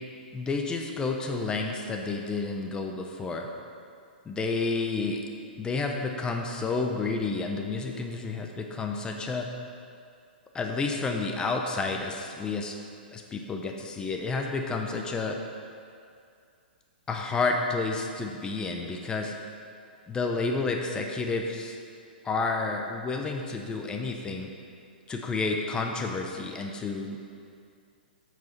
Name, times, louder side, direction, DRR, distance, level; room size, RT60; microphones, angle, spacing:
voice 1, 0.3-3.5 4.3-5.2 5.6-9.5 10.5-12.7 13.1-15.4 17.1-19.3 20.1-21.8 22.2-24.5 25.1-27.2, left 3 dB, 15° left, 2 dB, 0.9 m, -30 dB
8.8 x 6.2 x 5.9 m, 2.4 s
hypercardioid pair, 125°, 6 cm